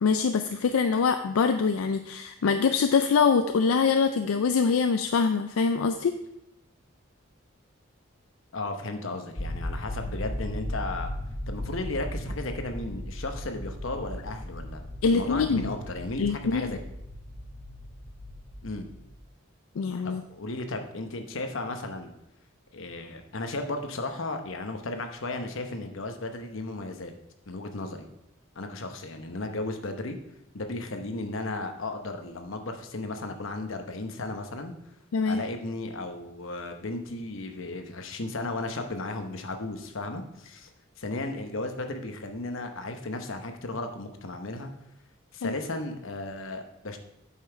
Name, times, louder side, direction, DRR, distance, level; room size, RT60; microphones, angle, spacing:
voice 1, 0.0-6.1 15.0-15.7 16.2-16.7 19.8-20.2 35.1-35.4 45.4-45.5, left 5 dB, 85° left, 8 dB, 0.4 m, -24 dB
voice 2, 8.5-11.1 11.5-14.8 15.1-16.8 18.6-18.9 20.0-22.1 22.7-27.1 27.5-28.1 28.6-30.2 30.5-34.7 35.3-40.7 41.0-44.7 45.3-47.0, left 2 dB, 70° left, 6 dB, 0.9 m, -35 dB
sound 1, 9.4-19.2, left 1 dB, 50° left, 1.2 m, -37 dB
8.3 x 5.7 x 4.5 m, 0.84 s
head